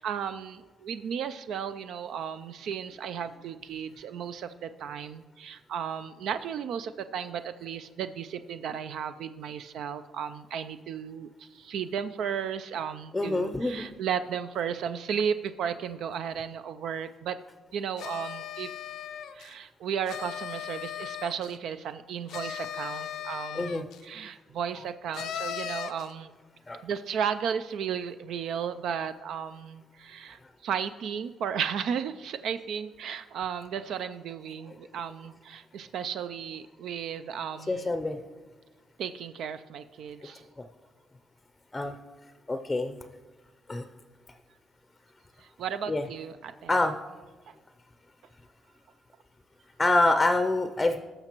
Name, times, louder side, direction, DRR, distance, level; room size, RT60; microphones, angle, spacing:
voice 1, 0.0-17.4 17.7-18.7 19.3-26.3 26.8-37.9 39.0-40.4 45.4-46.7, right 7 dB, 75° right, 11 dB, 0.3 m, -34 dB
voice 2, 13.1-13.9 23.5-23.8 26.7-26.8 37.7-38.2 41.7-41.9 42.5-43.0 43.7-43.9 45.9-46.0 46.7-47.0 49.8-51.0, left 2 dB, 20° left, 8 dB, 0.5 m, -26 dB
sound 1, 18.0-19.5 20.1-21.6 22.3-24.0 25.1-26.1, left 9 dB, 80° left, 0.4 m, -37 dB
16.5 x 6.6 x 3.0 m, 1.3 s
cardioid pair, 90°, 0 cm